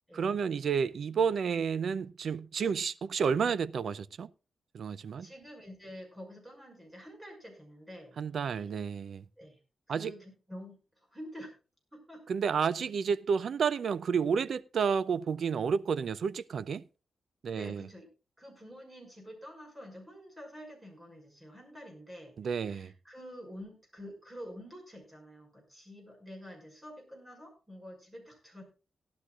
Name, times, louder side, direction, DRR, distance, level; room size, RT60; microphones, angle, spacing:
voice 1, 0.1-4.3 4.7-5.3 8.2-9.2 9.9-10.1 12.3-16.8 17.4-17.9 22.4-22.9, right 6 dB, 65° right, 0.5 m, -31 dB
voice 2, 5.2-8.2 9.4-9.6 9.9-10.8 11.1-11.5 11.9-12.2 17.5-18.1 18.4-28.6, equal, 15° right, 6.0 m, -48 dB
18.0 x 11.5 x 2.4 m
wide cardioid pair, 110°, 0 cm